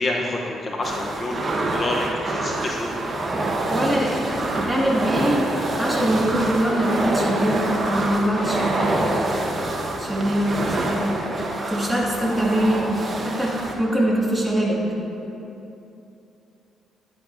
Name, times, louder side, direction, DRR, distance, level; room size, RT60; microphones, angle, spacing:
voice 1, 0.0-1.5 1.7-2.9, left 2 dB, 40° left, -1 dB, 0.8 m, -27 dB
sound 1, 0.8-13.7, right 2 dB, 35° right, 1.2 m, -26 dB
voice 2, 3.7-5.4 5.8-9.0 10.0-11.3 11.7-12.9 13.2-14.8, right 1 dB, 5° right, -5 dB, 2.0 m, -23 dB
10.5 x 9.9 x 2.6 m, 2.8 s
cardioid pair, 90°, 0 cm